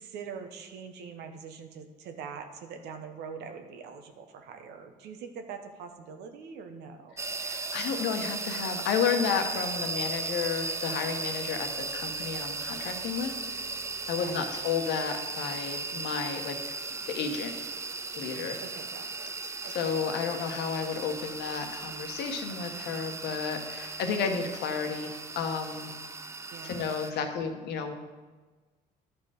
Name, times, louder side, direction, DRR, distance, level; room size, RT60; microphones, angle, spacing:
voice 1, 0.0-7.1 14.1-14.6 18.6-19.3 19.6-20.3 26.5-27.3, right 6 dB, 80° right, 6 dB, 1.0 m, -44 dB
voice 2, 7.1-13.6 14.1-16.7 17.1-17.5 18.2-18.6 19.6-25.9 26.6-27.9, left 6 dB, 80° left, 5 dB, 1.1 m, -32 dB
sound 1, 7.2-27.1, right 3 dB, 15° right, 0.4 m, -36 dB
11.5 x 4.4 x 5.0 m, 1.3 s
cardioid pair, 110°, 17 cm